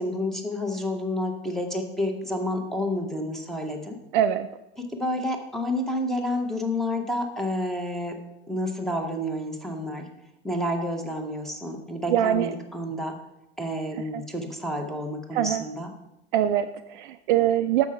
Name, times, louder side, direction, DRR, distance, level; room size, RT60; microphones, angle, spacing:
voice 1, 0.0-4.0 4.9-8.2 8.5-10.1 10.4-13.2 13.6-15.9, left 1 dB, ahead, 3 dB, 1.1 m, -29 dB
voice 2, 4.1-4.5 12.1-12.5 14.1-14.2 15.3-15.6 16.3-17.9, right 11 dB, 50° right, 9 dB, 0.4 m, -23 dB
6.8 x 6.0 x 5.7 m, 0.89 s
figure-of-eight pair, 85°, 33 cm